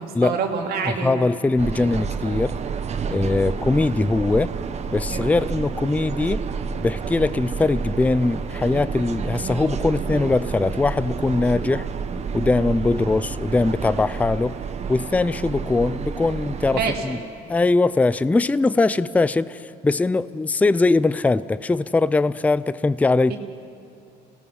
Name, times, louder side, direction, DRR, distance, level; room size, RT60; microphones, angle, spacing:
voice 1, 0.0-1.3 16.8-17.2 23.3-23.4, right 5 dB, 65° right, 2 dB, 2.6 m, -26 dB
voice 2, 1.0-2.6 3.1-4.5 4.9-6.4 6.8-11.9 12.3-14.6 14.9-17.2 17.5-23.3, left 3 dB, 10° left, 16 dB, 0.4 m, -21 dB
sound 1, 1.6-17.0, right 6 dB, 40° right, 1.0 m, -29 dB
26.5 x 17.5 x 6.2 m, 2.6 s
cardioid pair, 110°, 17 cm